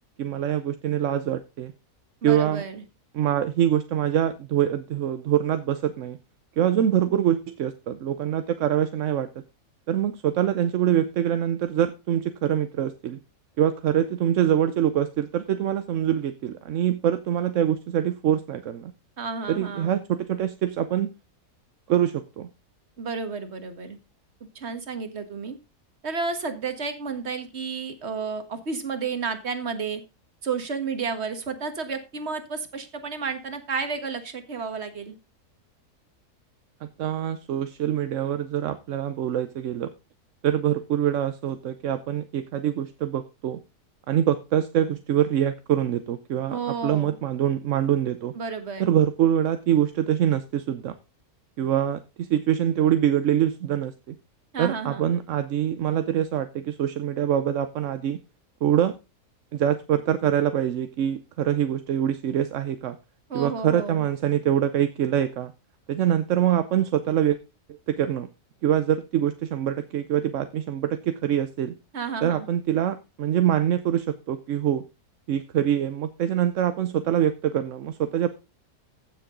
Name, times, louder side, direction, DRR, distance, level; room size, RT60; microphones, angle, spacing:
voice 1, 0.2-1.7 2.2-2.6 3.1-6.2 6.6-9.3 9.9-13.2 13.6-18.9 19.5-21.1 21.9-22.5 37.0-39.9 40.4-43.6 44.1-48.3 48.8-50.9 51.6-54.2 54.6-58.2 58.6-59.0 59.5-63.0 63.3-65.5 65.9-67.4 67.9-68.3 68.6-71.7 72.2-74.8 75.3-78.3, right 10 dB, 60° right, 11 dB, 0.9 m, -24 dB
voice 2, 2.2-2.8 19.2-20.0 23.0-24.0 24.5-25.6 26.0-30.0 30.4-35.1 46.5-47.2 48.3-48.9 54.5-55.1 63.3-64.1 71.9-72.5, right 5 dB, 45° right, 9 dB, 1.7 m, -31 dB
15.0 x 6.8 x 3.8 m, 0.28 s
omnidirectional pair, 1.6 m